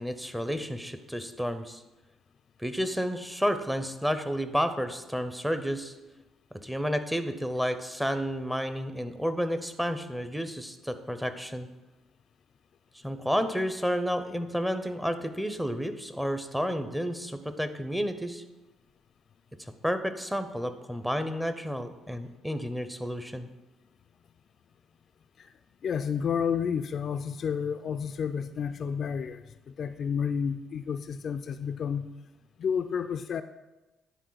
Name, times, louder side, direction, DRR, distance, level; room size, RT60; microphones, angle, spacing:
voice 1, 0.0-1.8 2.6-5.9 6.6-11.7 13.0-18.4 19.8-23.5, equal, 5° right, 10 dB, 0.7 m, -31 dB
voice 2, 25.8-32.1 32.6-33.4, left 7 dB, 55° left, 10 dB, 0.3 m, -31 dB
10.0 x 4.0 x 3.9 m, 1.1 s
supercardioid pair, 60°, 0 cm